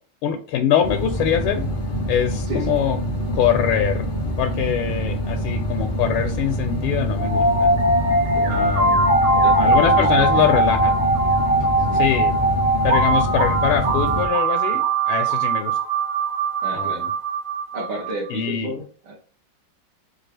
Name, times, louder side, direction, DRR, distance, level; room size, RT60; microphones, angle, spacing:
voice 1, 0.2-1.7 2.1-3.0 3.3-4.0 4.4-7.7 8.5-9.1 9.6-11.0 11.9-12.4 12.8-15.8 16.7-17.1 18.3-18.7, left 9 dB, 85° left, 4 dB, 1.5 m, -23 dB
sound 1, 0.8-14.3, equal, 40° left, 0.6 m, -26 dB
sound 2, 7.2-18.1, right 2 dB, 35° right, 1.0 m, -20 dB
voice 2, 8.3-8.7 9.3-10.5 11.8-12.0 16.6-17.1 17.7-19.2, right 1 dB, 70° right, -5 dB, 1.9 m, -32 dB
4.5 x 2.3 x 3.3 m, 0.42 s
omnidirectional pair, 2.3 m